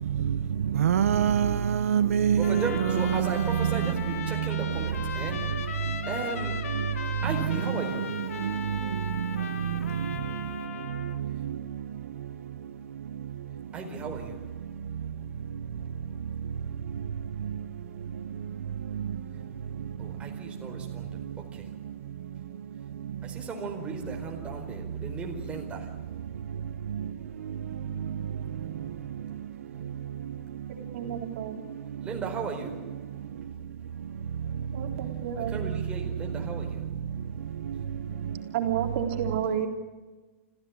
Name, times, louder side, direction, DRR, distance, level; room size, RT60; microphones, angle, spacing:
voice 1, 0.8-3.4, right 8 dB, 85° right, 1.1 m, -24 dB
Trumpet, 2.4-11.2, left 7 dB, 80° left, 2.2 m, -38 dB
voice 2, 2.4-6.7 7.2-8.1 13.7-14.4 20.0-21.7 23.2-25.9 32.0-32.9 35.4-36.9, right 4 dB, 15° right, 4.5 m, -36 dB
voice 3, 30.7-31.6 34.7-35.6 38.5-39.7, right 9 dB, 55° right, 3.7 m, -31 dB
26.5 x 15.5 x 8.7 m
hypercardioid pair, 145°, 8 cm